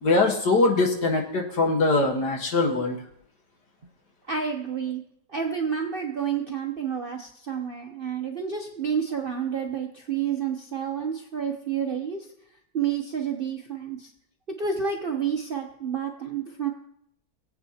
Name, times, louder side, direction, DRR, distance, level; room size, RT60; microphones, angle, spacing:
voice 1, 0.0-3.0, left 3 dB, 65° left, 1 dB, 2.0 m, -22 dB
voice 2, 4.3-5.0 5.3-12.2 12.7-14.1 14.6-16.7, right 7 dB, 45° right, 2 dB, 0.7 m, -29 dB
20.0 x 8.1 x 2.8 m, 0.73 s
omnidirectional pair, 1.9 m